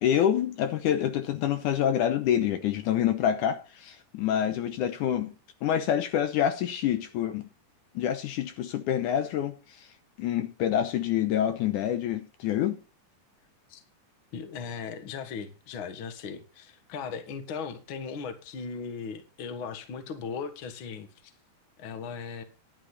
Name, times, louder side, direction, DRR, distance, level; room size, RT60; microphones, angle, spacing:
voice 1, 0.0-5.3 5.6-7.5 8.0-9.9 10.2-12.8, left 10 dB, 75° left, 2.2 m, -27 dB
voice 2, 14.3-21.3 21.8-22.4, left 6 dB, 50° left, 1.7 m, -38 dB
11.5 x 10.5 x 4.1 m
omnidirectional pair, 3.9 m